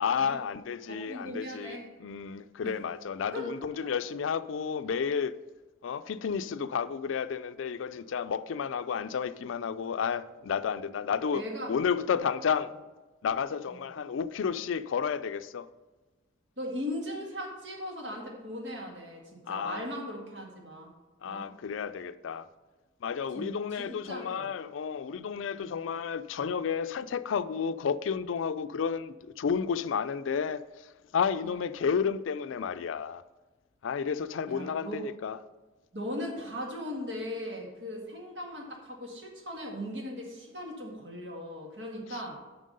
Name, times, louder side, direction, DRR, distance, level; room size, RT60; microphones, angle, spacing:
voice 1, 0.0-5.3 5.8-12.7 13.2-15.7 19.5-19.8 21.2-22.5 23.0-33.2 33.8-35.4, left 6 dB, 85° left, 0.4 m, -31 dB
voice 2, 0.9-1.9 2.6-2.7 3.3-3.5 3.8-3.9 11.3-11.7 13.7-13.8 16.6-20.9 21.3-21.5 23.3-24.5 25.5-25.7 31.4-31.6 34.5-35.0 35.9-42.4, left 1 dB, 60° right, 1.8 m, -38 dB
7.4 x 5.9 x 5.3 m
head